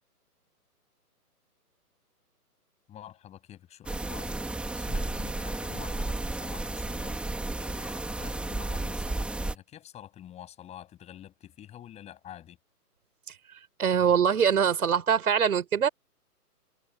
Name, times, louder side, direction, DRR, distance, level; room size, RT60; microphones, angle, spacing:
voice 1, 2.9-4.4 4.7-12.6, left 11 dB, 15° left, 8.0 m, -47 dB
sound 1, 3.9-9.6, right 2 dB, ahead, 2.5 m, -33 dB
voice 2, 13.8-15.9, right 7 dB, 65° right, 4.6 m, -23 dB
hypercardioid pair, 155°, 47 cm